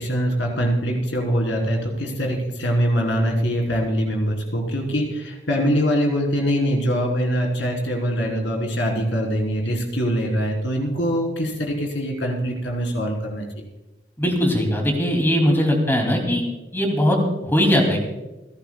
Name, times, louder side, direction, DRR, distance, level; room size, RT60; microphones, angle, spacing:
voice 1, 0.0-13.4, equal, 80° left, 0 dB, 3.9 m, -23 dB
voice 2, 14.2-16.4 16.7-18.1, equal, 15° left, 1 dB, 2.8 m, -20 dB
29.5 x 12.0 x 2.4 m, 1.0 s
head